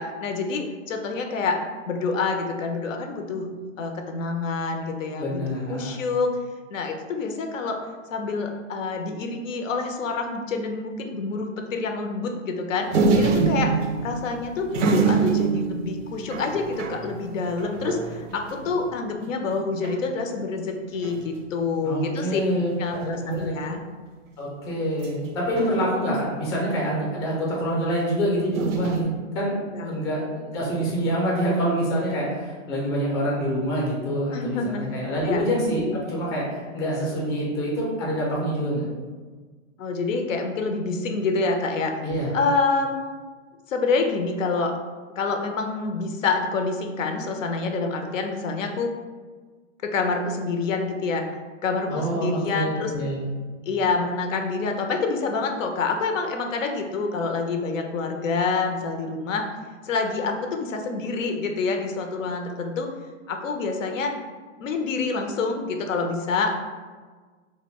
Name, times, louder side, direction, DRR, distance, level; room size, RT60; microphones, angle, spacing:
voice 1, 0.0-1.6 1.9-3.5 3.8-5.4 5.7-6.3 6.7-7.8 8.1-13.7 14.0-22.4 22.8-23.8 29.7-30.0 34.3-34.9 35.2-35.5 39.8-41.9 42.3-42.9 43.7-44.8 45.2-48.9 49.8-51.3 51.6-52.9 53.7-59.4 59.8-62.9 63.3-64.1 64.6-66.6, left 4 dB, 90° left, 4 dB, 0.6 m, -27 dB
voice 2, 5.2-6.0 21.8-23.5 24.4-38.8 42.0-42.3 51.9-53.2, equal, 20° left, -4 dB, 0.4 m, -26 dB
sound 1, 12.9-18.9 19.3-19.4 19.6-20.1 20.9-21.5 22.9-23.4 25.0-26.3 28.5-29.0, right 4 dB, 75° right, 0.5 m, -26 dB
2.1 x 2.1 x 3.5 m, 1.4 s
hypercardioid pair, 150°, 37 cm